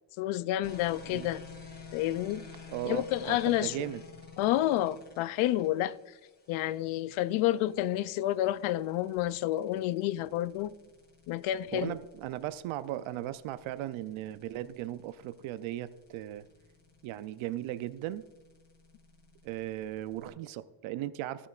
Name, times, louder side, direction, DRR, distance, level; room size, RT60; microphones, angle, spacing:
voice 1, 0.2-1.4 1.9-2.5 2.9-3.8 4.4-6.0 6.5-10.7 11.3-11.9, left 14 dB, 90° left, 0.6 m, -29 dB
sound 1, 0.6-20.3, left 4 dB, 20° left, 2.0 m, -52 dB
voice 2, 2.7-4.0 11.7-16.5 17.0-18.2 19.4-21.5, right 13 dB, 85° right, 0.6 m, -37 dB
16.0 x 7.0 x 2.4 m
cardioid pair, 120°, 47 cm